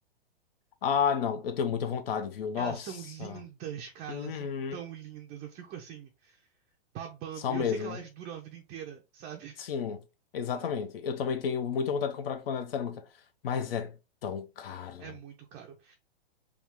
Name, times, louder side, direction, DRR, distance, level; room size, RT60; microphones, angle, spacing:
voice 1, 0.8-2.9 3.2-3.4 4.1-4.8 7.4-8.0 9.6-10.0 10.3-13.0 13.4-13.9 14.2-15.0, left 7 dB, 65° left, 0.6 m, -31 dB
voice 2, 2.6-6.5 6.9-9.6 15.0-16.0, right 9 dB, 20° right, 0.4 m, -42 dB
3.4 x 2.3 x 3.5 m
hypercardioid pair, 120°, 31 cm